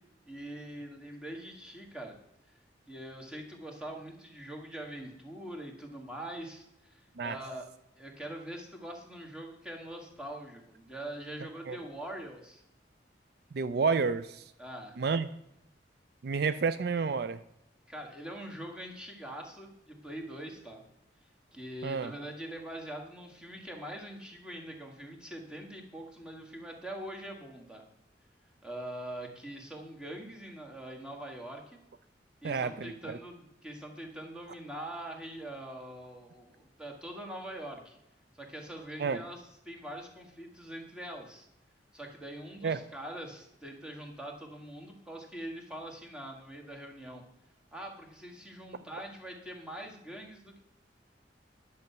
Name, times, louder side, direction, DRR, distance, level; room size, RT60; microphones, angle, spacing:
voice 1, 0.2-2.2 2.9-7.7 8.0-12.6 14.6-15.0 17.9-20.8 21.5-27.8 28.6-31.8 32.4-38.0 38.3-41.5 41.9-47.2 47.7-50.6, right 1 dB, 5° right, 1 dB, 1.9 m, -43 dB
voice 2, 13.5-14.5 15.0-15.3 16.2-17.4 21.8-22.1 32.4-33.2 39.0-39.2 42.6-42.8, right 5 dB, 60° right, 13 dB, 0.4 m, -30 dB
10.5 x 7.0 x 5.8 m, 0.83 s
head